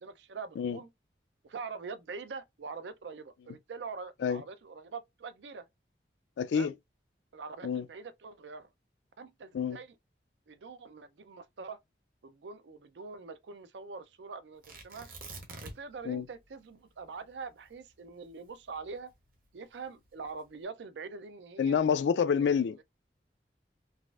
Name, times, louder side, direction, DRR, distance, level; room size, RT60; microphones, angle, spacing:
voice 1, 0.0-0.9 1.4-5.6 6.5-6.7 7.3-8.7 9.2-9.9 10.5-11.8 12.2-15.1 15.6-19.1 19.5-21.8 22.3-22.8, right 4 dB, 85° right, 0.5 m, -44 dB
voice 2, 6.4-6.7 7.6-7.8 9.5-9.8 16.0-16.3 21.6-22.8, left 7 dB, 85° left, 0.3 m, -28 dB
Tearing, 14.6-16.0 16.3-16.4 17.0-19.3 20.0-20.5, right 2 dB, 50° right, 1.0 m, -47 dB
4.0 x 2.5 x 2.3 m
head